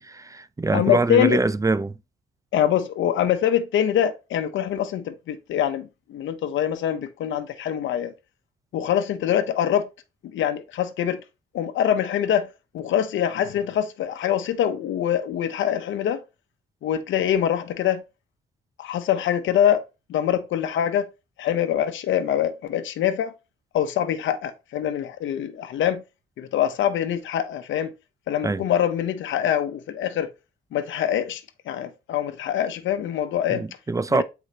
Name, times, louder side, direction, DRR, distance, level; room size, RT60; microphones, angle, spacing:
voice 1, 0.0-1.9 28.4-28.6 33.5-34.2, right 3 dB, 15° right, 0.5 m, -24 dB
voice 2, 0.7-1.4 2.5-8.1 8.7-9.9 10.3-11.2 11.5-12.5 12.7-16.2 16.8-18.0 18.8-19.8 20.1-21.1 21.4-23.3 23.7-26.0 26.4-27.9 28.3-30.3 30.7-33.6 34.1-34.2, left 10 dB, 75° left, 0.9 m, -24 dB
8.2 x 4.6 x 3.0 m
cardioid pair, 90°, 20 cm